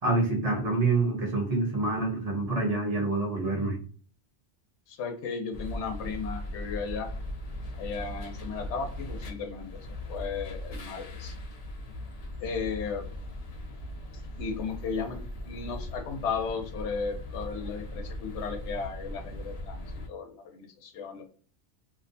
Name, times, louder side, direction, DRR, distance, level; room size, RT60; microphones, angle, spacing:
voice 1, 0.0-3.8, right 3 dB, 40° right, 1 dB, 0.7 m, -27 dB
voice 2, 4.9-7.1 7.8-9.7 10.1-11.3 12.4-13.0 14.4-15.2 15.4-19.8 20.1-21.3, left 5 dB, 85° left, 4 dB, 0.9 m, -35 dB
sound 1, 5.5-20.1, left 1 dB, 55° left, 0.4 m, -39 dB
2.6 x 2.1 x 2.5 m, 0.42 s
omnidirectional pair, 1.1 m